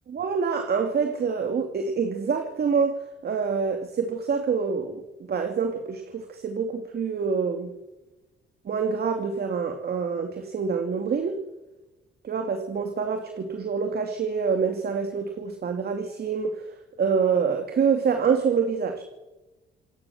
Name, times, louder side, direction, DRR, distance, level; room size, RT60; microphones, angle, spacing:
voice 1, 0.1-3.0 3.2-5.0 5.3-7.7 8.7-11.4 12.2-16.5 17.0-19.0, right 5 dB, 55° right, 6 dB, 2.5 m, -26 dB
27.5 x 18.0 x 7.2 m, 1.1 s
cardioid pair, 90°, 20 cm